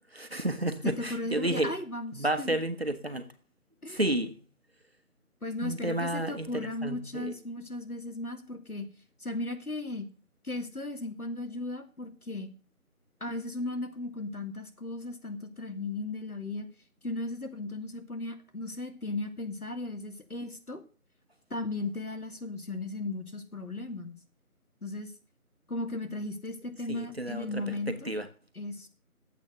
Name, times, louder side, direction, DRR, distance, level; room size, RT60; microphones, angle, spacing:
voice 1, 0.1-1.7 2.1-3.2 3.9-4.3 5.6-7.3 26.9-27.7 28.1-28.3, right 1 dB, 40° right, 1.5 m, -31 dB
voice 2, 0.8-2.6 3.8-4.0 5.4-8.9 9.2-10.1 10.4-12.5 13.2-16.7 17.0-20.8 21.5-24.2 24.8-25.1 25.7-28.1 28.5-28.9, left 2 dB, 75° left, 2.7 m, -36 dB
11.5 x 8.5 x 6.6 m
figure-of-eight pair, 175°, 45 cm